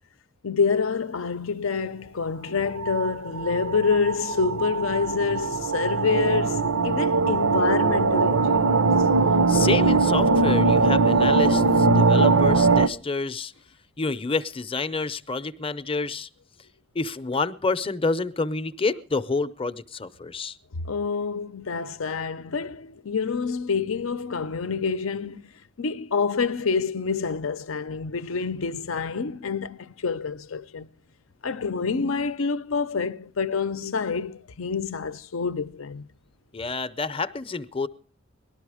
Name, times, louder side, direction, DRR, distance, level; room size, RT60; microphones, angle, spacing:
voice 1, 0.4-8.9 20.7-25.5 25.8-30.9 31.4-36.1, left 5 dB, 75° left, 0.6 m, -27 dB
sound 1, 2.6-12.9, right 3 dB, 85° right, 0.8 m, -21 dB
voice 2, 9.5-13.5 14.0-16.3 16.9-20.6 36.5-37.9, left 3 dB, 25° left, 0.7 m, -28 dB
19.0 x 12.5 x 4.9 m
head